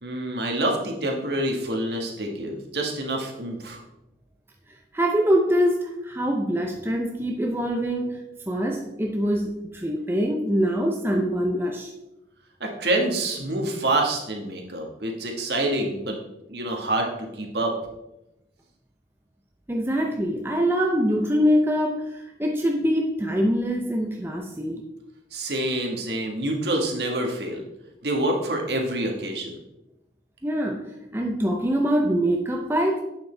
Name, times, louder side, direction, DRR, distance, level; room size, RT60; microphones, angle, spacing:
voice 1, 0.0-3.8 12.6-16.2 16.5-17.7 25.3-27.6 28.0-29.6, right 1 dB, 65° right, 1 dB, 1.6 m, -27 dB
voice 2, 4.9-11.9 19.7-24.8 30.4-30.9 31.1-33.0, equal, 10° right, 1 dB, 0.5 m, -24 dB
8.2 x 6.9 x 3.4 m, 0.93 s
head